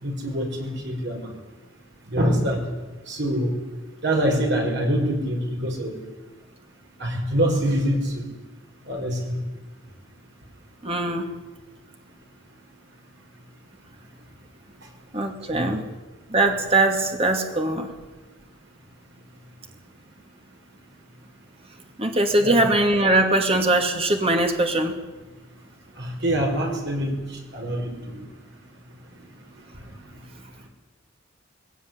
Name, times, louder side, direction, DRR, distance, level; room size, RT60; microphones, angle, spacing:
voice 1, 0.0-1.3 2.1-2.6 3.1-3.5 4.0-5.9 7.0-8.3 8.9-9.4 15.5-15.7 22.4-22.6 26.0-27.1 27.5-27.9, equal, 55° right, 1 dB, 5.6 m, -24 dB
voice 2, 10.8-11.3 15.1-15.8 16.3-17.9 22.0-25.0, right 2 dB, 30° right, 4 dB, 2.6 m, -21 dB
20.0 x 17.5 x 9.8 m, 1.2 s
head